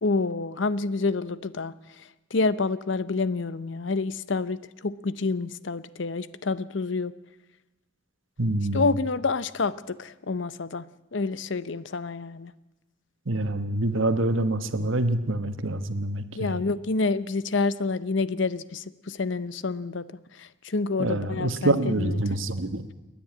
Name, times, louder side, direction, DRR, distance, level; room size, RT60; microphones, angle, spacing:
voice 1, 0.0-1.7 2.3-7.1 8.7-10.8 11.1-12.5 16.4-20.1 20.4-22.2, left 3 dB, 65° left, 16 dB, 0.7 m, -28 dB
voice 2, 8.4-9.0 13.3-16.6 21.0-22.9, right 2 dB, 80° right, 9 dB, 1.4 m, -26 dB
29.0 x 10.5 x 8.8 m, 1.1 s
head